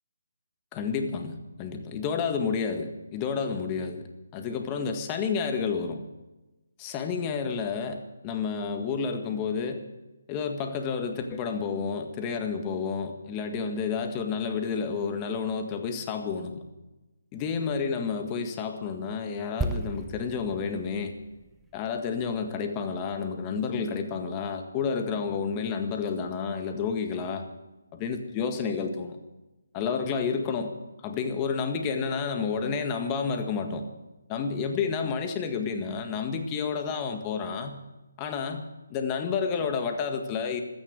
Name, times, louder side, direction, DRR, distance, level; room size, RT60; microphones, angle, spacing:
voice 1, 0.7-4.0 4.3-6.0 6.8-9.8 10.3-16.6 17.3-21.2 21.7-27.5 27.9-29.2 29.7-30.7 31.0-33.9 34.3-37.8 38.2-40.6, left 5 dB, 20° left, 6 dB, 1.7 m, -30 dB
sound 1, 19.6-23.3 23.5-23.7, right 2 dB, 5° right, 0.9 m, -36 dB
16.0 x 13.0 x 6.5 m, 1.0 s
figure-of-eight pair, 150°, 0 cm